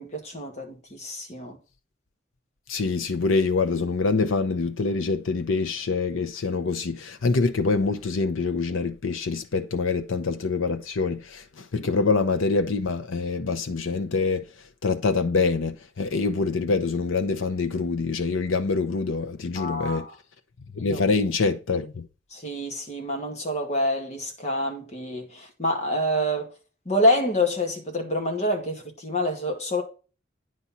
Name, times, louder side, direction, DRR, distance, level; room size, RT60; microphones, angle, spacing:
voice 1, 0.0-1.6 11.8-11.9 19.6-20.1 20.8-21.0 22.3-26.5 26.9-29.8, left 1 dB, 35° left, 2.0 m, -27 dB
voice 2, 2.7-14.4 14.8-20.1 20.7-22.1, left 4 dB, 90° left, 0.7 m, -25 dB
9.5 x 4.2 x 5.7 m
head